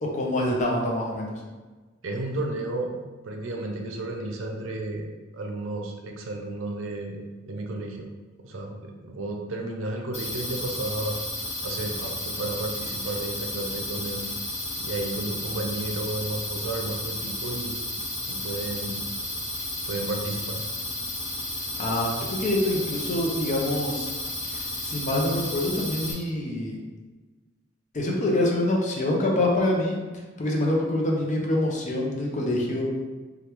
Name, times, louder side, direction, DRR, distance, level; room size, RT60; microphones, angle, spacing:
voice 1, 0.0-1.3 21.8-24.1 24.4-26.8 27.9-30.0 30.4-32.9, left 1 dB, 40° left, -1 dB, 0.6 m, -25 dB
voice 2, 2.0-3.0 3.2-8.1 8.4-11.2 11.6-14.3 14.8-17.7 18.3-19.0 19.9-20.6, right 2 dB, 90° right, 2 dB, 0.5 m, -32 dB
sound 1, 10.1-26.1, left 2 dB, 80° left, 1.1 m, -33 dB
3.3 x 2.3 x 2.9 m, 1.3 s
head